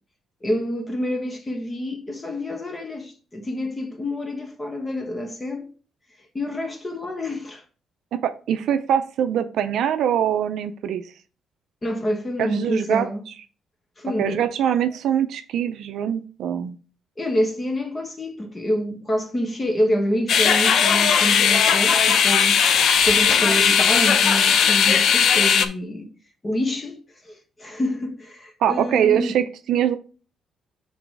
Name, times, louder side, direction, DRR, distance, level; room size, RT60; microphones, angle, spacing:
voice 1, 0.4-5.7 6.3-7.6 11.8-13.2 14.0-14.4 17.2-22.6 23.0-26.1 26.4-29.4, equal, 25° left, 1.4 m, -27 dB
voice 2, 8.2-11.0 12.4-13.1 14.2-16.8 28.6-30.0, right 9 dB, 75° right, 0.4 m, -23 dB
sound 1, 20.3-25.7, left 7 dB, 65° left, 0.6 m, -17 dB
6.0 x 4.0 x 4.7 m
cardioid pair, 90°, 0 cm